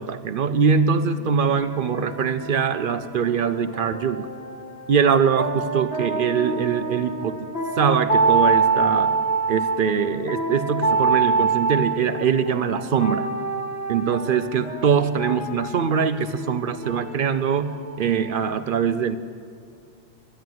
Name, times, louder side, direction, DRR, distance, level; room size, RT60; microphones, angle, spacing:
voice 1, 0.0-4.3 4.9-7.4 7.8-9.1 9.5-13.3 13.9-19.2, right 6 dB, 60° right, 11 dB, 0.7 m, -22 dB
sound 1, 1.0-18.5, right 4 dB, 65° left, 1.7 m, -26 dB
10.5 x 10.0 x 9.3 m, 2.3 s
omnidirectional pair, 1.1 m